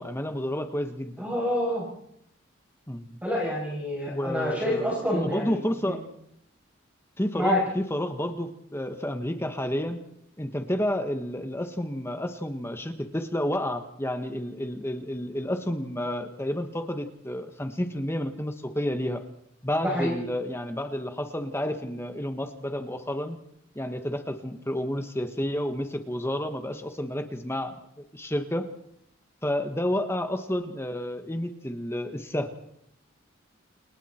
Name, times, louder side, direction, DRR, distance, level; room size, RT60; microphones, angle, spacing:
voice 1, 0.0-1.3 2.9-3.2 4.1-6.0 7.2-10.0 10.4-19.2 19.6-23.4 23.7-28.7 29.4-32.5, left 1 dB, 10° left, 6 dB, 1.4 m, -30 dB
voice 2, 1.2-1.9 3.2-5.6 5.9-6.0 7.3-7.6 19.8-20.1, equal, 5° right, -5 dB, 7.7 m, -27 dB
29.5 x 29.5 x 4.5 m, 0.73 s
head